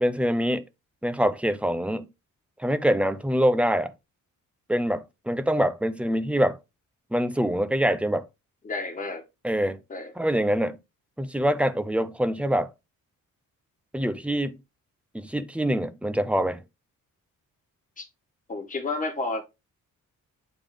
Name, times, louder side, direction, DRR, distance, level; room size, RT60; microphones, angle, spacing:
voice 1, 0.0-0.6 1.0-2.1 2.6-3.9 4.7-6.6 7.1-8.3 9.4-9.8 10.2-10.8 11.2-12.7 13.9-14.6 15.1-16.6, equal, 5° right, 0.5 m, -24 dB
voice 2, 8.6-9.2 9.9-10.1 18.0-18.1 18.5-19.4, left 3 dB, 25° left, 1.4 m, -31 dB
9.0 x 3.5 x 3.4 m
wide cardioid pair, 175°, 33 cm